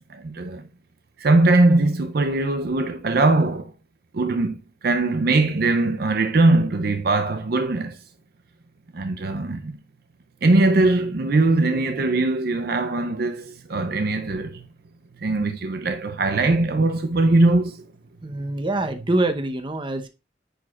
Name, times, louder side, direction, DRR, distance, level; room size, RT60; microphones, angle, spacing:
voice 1, 0.1-0.6 1.2-3.7 4.1-8.0 8.9-9.7 10.4-14.7 15.2-17.9, right 2 dB, 55° right, 0.5 m, -21 dB
voice 2, 18.2-20.1, right 2 dB, 25° right, 0.8 m, -25 dB
10.0 x 4.8 x 2.4 m
head